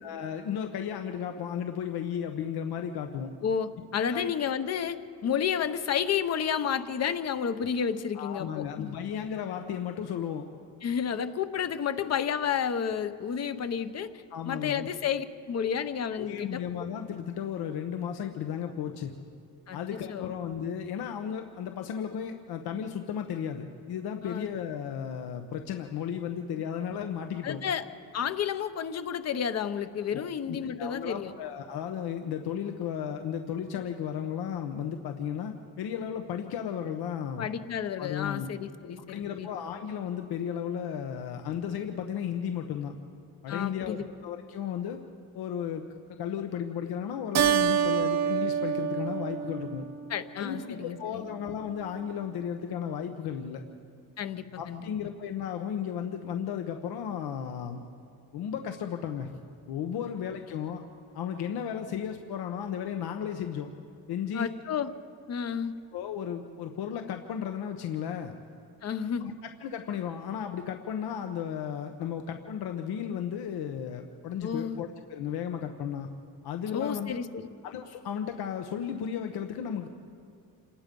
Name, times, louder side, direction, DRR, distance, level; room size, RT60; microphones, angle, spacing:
voice 1, 0.0-3.3 4.1-4.3 8.1-10.5 14.3-14.9 16.1-19.1 19.7-27.6 30.1-37.5 38.0-38.5 39.1-42.9 43.4-44.0 44.2-45.0 45.3-49.9 50.4-53.6 54.5-57.8 58.3-59.3 59.7-60.8 61.1-63.7 64.1-64.5 65.9-68.3 69.2-69.3 69.6-76.1 76.4-77.2 77.6-79.9, left 8 dB, 75° left, 5 dB, 1.1 m, -34 dB
voice 2, 3.4-8.9 10.8-16.6 19.7-19.8 20.1-20.3 24.2-24.5 27.4-27.8 28.1-31.3 37.4-39.5 43.5-44.0 50.1-51.3 54.2-54.9 64.3-64.9 65.3-65.7 68.8-69.3 74.4-74.8 76.7-77.5, left 7 dB, 40° left, 11 dB, 0.9 m, -31 dB
Keyboard (musical), 47.3-50.2, right 8 dB, 45° right, 0.8 m, -27 dB
28.0 x 19.0 x 5.4 m, 2.3 s
cardioid pair, 170°, 38 cm